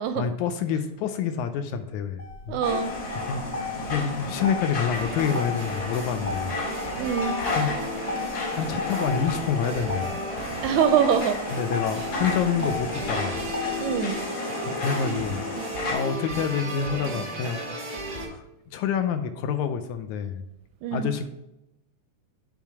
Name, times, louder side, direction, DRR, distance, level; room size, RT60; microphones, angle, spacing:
voice 1, 0.2-2.6 3.2-6.6 7.5-7.8 8.5-10.2 11.5-13.5 14.7-15.4 15.9-18.0 18.3-20.4 20.9-21.3, left 7 dB, 80° left, 8 dB, 1.9 m, -28 dB
Motor vehicle (road), 2.2-14.2, left 4 dB, 40° left, 0.5 m, -36 dB
voice 2, 2.5-2.9 7.0-7.4 10.6-11.4 12.0-12.1 13.8-14.2 20.8-21.1, right 8 dB, 80° right, 8 dB, 1.7 m, -24 dB
sound 1, 2.6-15.9, left 2 dB, 55° left, 3.8 m, -33 dB
sound 2, 4.9-18.3, right 1 dB, 40° right, 0.7 m, -35 dB
9.1 x 3.7 x 4.7 m, 0.89 s
omnidirectional pair, 3.6 m